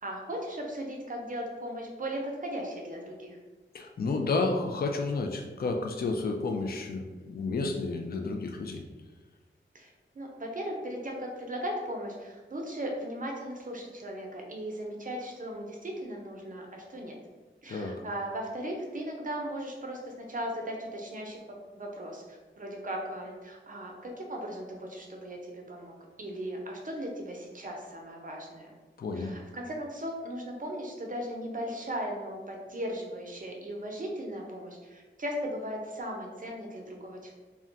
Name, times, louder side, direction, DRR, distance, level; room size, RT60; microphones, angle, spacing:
voice 1, 0.0-3.4 9.7-9.9 10.1-17.2 17.6-25.9 26.2-28.7 29.1-37.3, equal, 40° right, 0 dB, 0.6 m, -37 dB
voice 2, 3.7-8.8 17.7-18.0 29.0-29.3, left 3 dB, 50° left, 3 dB, 0.4 m, -31 dB
2.3 x 2.2 x 3.8 m, 1.3 s
wide cardioid pair, 75°, 20 cm